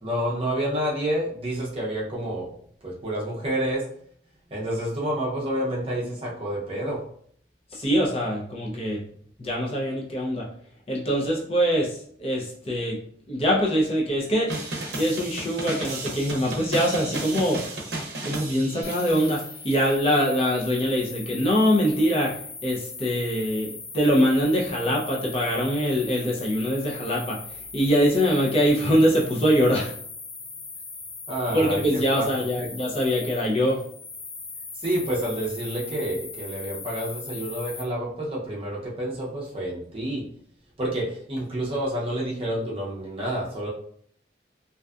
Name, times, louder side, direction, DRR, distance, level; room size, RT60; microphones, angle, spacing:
voice 1, 0.0-2.5 2.8-3.9 4.5-7.0 31.3-32.3 32.6-32.7 34.8-40.2 40.8-43.7, right 1 dB, 30° right, -4 dB, 0.6 m, -29 dB
voice 2, 7.7-9.0 9.4-10.4 10.9-13.0 13.3-14.5 15.0-17.7 18.2-27.4 27.7-29.9 31.5-33.8, equal, 30° left, -3 dB, 0.5 m, -23 dB
sound 1, 14.5-19.4, right 2 dB, 65° right, 0.7 m, -33 dB
sound 2, 18.8-37.8, left 4 dB, 80° left, 0.6 m, -39 dB
2.6 x 2.2 x 2.3 m, 0.62 s
head